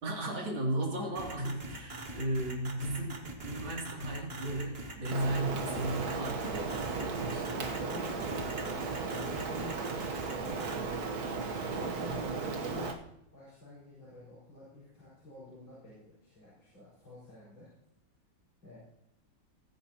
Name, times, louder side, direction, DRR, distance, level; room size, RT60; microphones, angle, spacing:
voice 1, 0.0-7.5 11.4-11.8, right 1 dB, 80° right, -2 dB, 3.6 m, -35 dB
sound 1, 1.2-10.8, right 2 dB, 30° right, 1.6 m, -43 dB
Rain, 5.1-12.9, right 4 dB, 55° right, 1.5 m, -35 dB
voice 2, 7.8-8.3 8.6-8.9 9.1-10.7 11.8-13.0 13.3-17.7 18.6-18.8, left 2 dB, 80° left, -8 dB, 5.7 m, -50 dB
20.0 x 10.0 x 2.9 m, 0.84 s
omnidirectional pair, 2.1 m